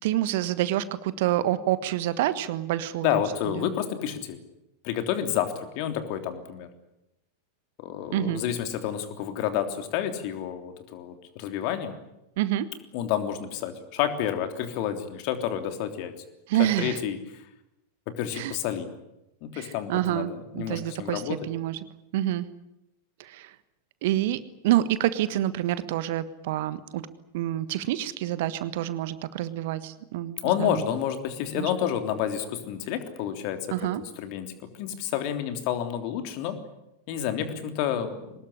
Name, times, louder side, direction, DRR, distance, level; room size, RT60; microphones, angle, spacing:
voice 1, 0.0-3.7 8.1-8.4 12.4-12.7 16.5-17.0 18.3-18.6 19.5-21.8 22.1-22.4 23.2-23.5 24.0-27.1 27.3-30.8 31.5-31.7 33.7-34.0, right 13 dB, 50° right, 15 dB, 1.4 m, -27 dB
voice 2, 3.0-4.4 4.8-6.7 7.8-11.9 12.9-16.1 16.6-17.4 18.1-18.9 19.4-21.4 30.4-33.6 34.2-36.6 37.1-38.1, left 10 dB, 45° left, 7 dB, 3.3 m, -29 dB
23.5 x 20.0 x 10.0 m, 0.88 s
figure-of-eight pair, 90°, 0 cm